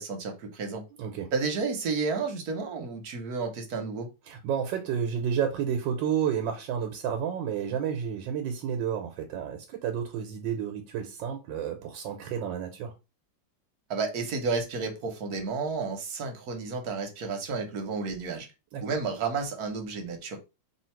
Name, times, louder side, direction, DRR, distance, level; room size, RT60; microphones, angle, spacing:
voice 1, 0.0-0.8 1.3-4.1 13.9-18.5 18.8-20.4, right 4 dB, 60° right, 1.2 m, -31 dB
voice 2, 1.0-1.3 4.3-12.9 18.7-18.8, right 8 dB, 90° right, 1.4 m, -31 dB
3.1 x 2.8 x 4.4 m
omnidirectional pair, 2.0 m